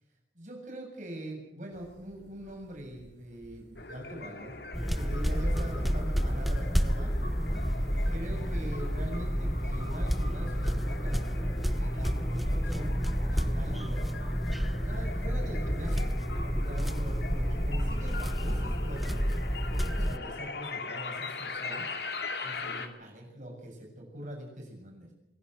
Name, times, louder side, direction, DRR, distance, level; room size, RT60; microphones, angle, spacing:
voice 1, 0.3-4.6 4.8-7.1 7.7-11.5 11.8-13.0 13.2-14.2 14.8-16.1 16.4-21.9 22.4-25.1, right 1 dB, 45° right, 0 dB, 7.6 m, -43 dB
sound 1, 1.7-18.9, equal, 85° right, 3.6 m, -51 dB
sound 2, 3.8-22.9, left 3 dB, 70° left, 2.4 m, -41 dB
sound 3, 4.7-20.2, equal, ahead, 0.9 m, -30 dB
25.0 x 11.5 x 9.4 m, 0.88 s
head